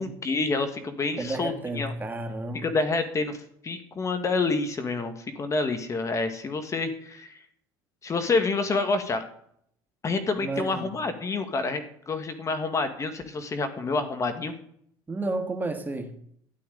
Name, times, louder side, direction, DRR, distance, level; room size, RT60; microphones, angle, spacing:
voice 1, 0.0-1.9 2.5-3.4 3.6-7.4 8.0-9.2 10.0-14.5, left 3 dB, 30° left, 8 dB, 1.6 m, -28 dB
voice 2, 1.2-2.7 10.4-10.9 15.1-16.2, right 2 dB, 20° right, 6 dB, 1.8 m, -32 dB
12.5 x 11.0 x 3.9 m, 0.66 s
supercardioid pair, 100°, 10 cm